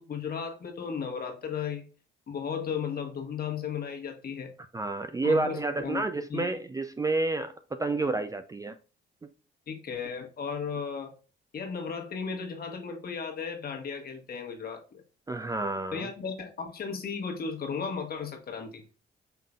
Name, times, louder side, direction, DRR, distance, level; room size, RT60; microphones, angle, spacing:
voice 1, 0.0-1.9 2.3-4.5 5.2-6.0 6.3-6.5 9.7-11.1 11.5-15.0 15.9-18.8, left 6 dB, 50° left, 1.3 m, -35 dB
voice 2, 4.7-7.5 7.8-8.8 9.2-9.3 15.3-16.1, right 3 dB, 15° right, 0.4 m, -29 dB
5.7 x 3.7 x 2.3 m
cardioid pair, 90°, 20 cm